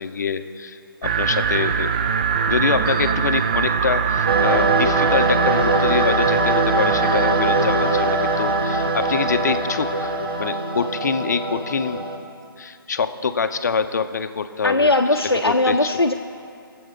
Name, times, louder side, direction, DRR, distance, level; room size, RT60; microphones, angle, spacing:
voice 1, 0.0-1.9 2.5-12.1 12.6-14.9 15.3-15.9, left 5 dB, 50° left, 10 dB, 0.6 m, -25 dB
sound 1, 1.0-10.5, right 6 dB, 20° right, 0.3 m, -23 dB
sound 2, 4.3-12.2, right 2 dB, 75° right, 1.8 m, -22 dB
voice 2, 14.6-16.1, left 2 dB, 90° left, 2 dB, 0.6 m, -19 dB
23.0 x 7.8 x 3.4 m, 2.4 s
figure-of-eight pair, 140°, 12 cm